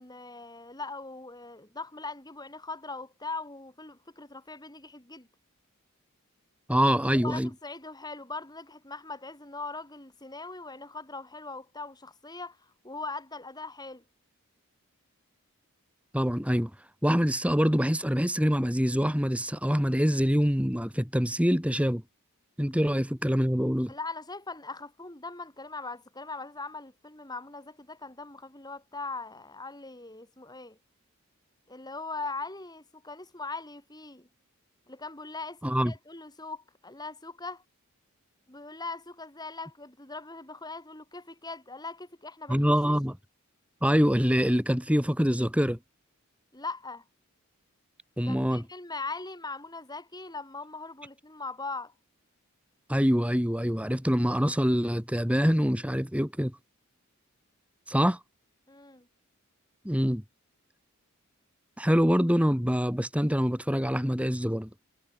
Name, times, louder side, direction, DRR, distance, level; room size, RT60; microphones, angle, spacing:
voice 1, 0.0-5.3 7.1-14.0 23.9-30.8 31.7-34.3 34.9-37.6 38.5-42.9 46.5-47.0 48.3-51.9 58.7-59.1, left 3 dB, 20° left, 4.8 m, -40 dB
voice 2, 6.7-7.5 16.1-16.7 17.0-22.0 22.6-23.9 35.6-35.9 42.5-43.2 43.8-45.8 48.2-48.6 52.9-56.6 57.9-58.2 59.8-60.2 61.8-64.7, equal, 5° right, 4.8 m, -25 dB
head